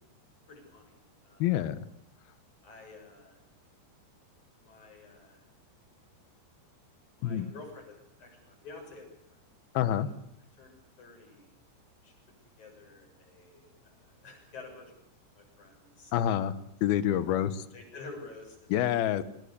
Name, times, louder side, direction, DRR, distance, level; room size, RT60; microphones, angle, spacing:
voice 1, 0.5-1.5 2.6-3.4 4.6-5.4 7.1-9.4 9.8-10.1 10.6-11.5 12.0-12.1 12.6-14.9 15.4-16.1 17.0-17.2 17.7-18.6, left 3 dB, 40° left, 2 dB, 8.3 m, -50 dB
voice 2, 1.4-1.8 7.2-7.5 9.7-10.1 16.1-16.5 16.8-17.5 18.7-19.2, left 11 dB, 70° left, 14 dB, 2.6 m, -27 dB
25.0 x 20.0 x 8.4 m, 0.72 s
omnidirectional pair, 5.3 m